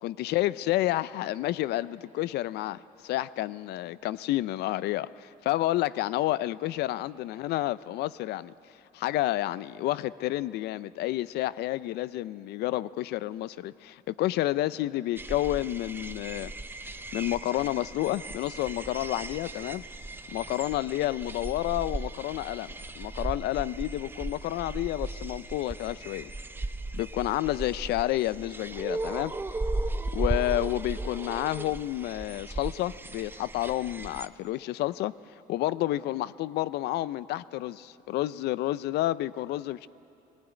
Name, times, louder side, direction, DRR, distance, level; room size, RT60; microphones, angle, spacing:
voice 1, 0.0-8.5 8.9-16.5 16.8-19.8 20.3-26.3 26.9-29.3 30.1-35.1 35.5-39.9, left 15 dB, 75° left, 18 dB, 0.5 m, -30 dB
sound 1, 15.2-34.3, right 2 dB, 15° right, 0.6 m, -36 dB
20.5 x 16.0 x 9.1 m, 2.8 s
cardioid pair, 110°, 17 cm